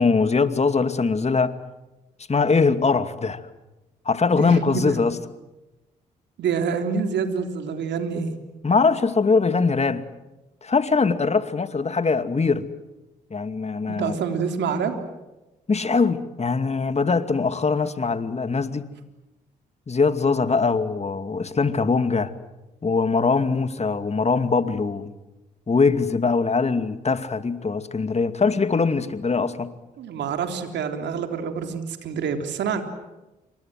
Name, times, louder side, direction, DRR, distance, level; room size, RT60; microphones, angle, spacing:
voice 1, 0.0-1.5 2.3-3.4 4.1-5.2 8.6-10.0 10.6-12.7 13.3-14.1 15.7-18.9 19.9-22.3 22.8-25.1 25.7-29.7, left 4 dB, 35° left, 2.5 m, -22 dB
voice 2, 4.4-4.9 6.4-8.3 13.9-15.0 30.0-32.8, right 6 dB, 70° right, 3.6 m, -27 dB
29.0 x 25.5 x 7.8 m
hypercardioid pair, 50°, 19 cm